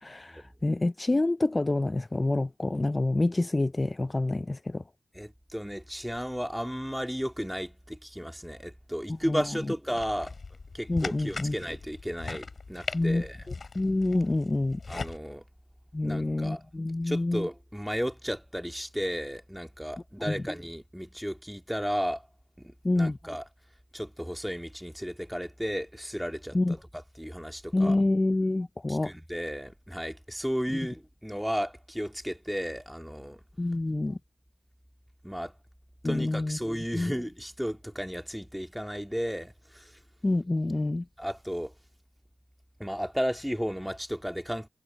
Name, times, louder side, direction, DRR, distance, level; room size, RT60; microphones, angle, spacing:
voice 1, 0.0-4.8 9.3-9.4 10.9-11.6 12.9-13.2 13.7-14.8 15.9-17.5 20.3-20.4 22.8-23.2 26.5-26.8 27.7-29.1 30.7-30.8 33.6-34.2 36.0-36.6 36.9-37.1 40.2-41.0, left 2 dB, 30° left, 0.3 m, -27 dB
voice 2, 5.1-10.3 10.7-13.5 14.9-15.4 16.0-16.6 17.0-22.3 22.6-23.4 23.9-28.0 28.9-33.4 35.2-35.5 36.0-40.0 41.2-41.7 42.8-44.7, equal, ahead, 2.1 m, -34 dB
sound 1, 10.0-15.2, left 4 dB, 60° left, 3.5 m, -40 dB
cardioid pair, 45°, 0 cm